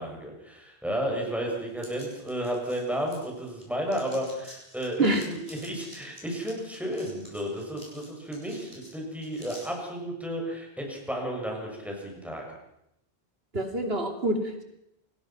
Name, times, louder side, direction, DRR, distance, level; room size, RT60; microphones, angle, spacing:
voice 1, 0.0-12.4, equal, ahead, 0 dB, 7.1 m, -33 dB
sound 1, 1.8-3.6 3.9-9.7, equal, 30° right, 8.2 m, -50 dB
voice 2, 13.5-14.6, right 2 dB, 75° right, 4 dB, 3.2 m, -26 dB
29.0 x 20.0 x 6.0 m, 0.82 s
omnidirectional pair, 1.0 m